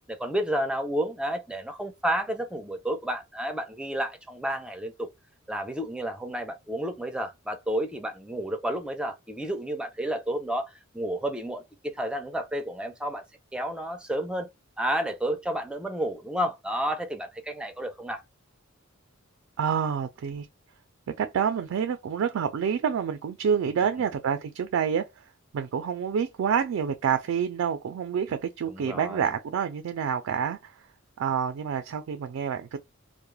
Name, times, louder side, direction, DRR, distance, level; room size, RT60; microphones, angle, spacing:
voice 1, 0.1-5.1 5.5-13.2 13.5-14.5 14.8-18.2 28.7-29.3, right 1 dB, 5° right, 0.4 m, -31 dB
voice 2, 19.6-20.5 21.1-25.1 25.5-30.7 31.2-32.8, right 7 dB, 80° right, 0.3 m, -28 dB
2.2 x 2.0 x 3.1 m
head